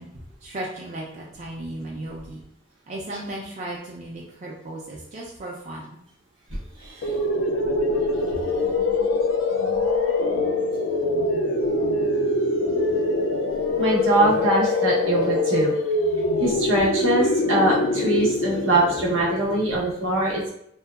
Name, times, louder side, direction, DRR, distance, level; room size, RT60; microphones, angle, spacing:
voice 1, 0.0-2.4 2.9-6.0 8.3-8.4, right 1 dB, 35° right, -4 dB, 0.4 m, -35 dB
voice 2, 6.8-7.1 7.9-8.1 13.8-15.7 16.4-20.5, right 2 dB, 75° right, -3 dB, 0.8 m, -22 dB
sound 1, 7.0-19.8, left 2 dB, 70° left, 0.3 m, -24 dB
2.6 x 2.2 x 2.3 m, 0.70 s
head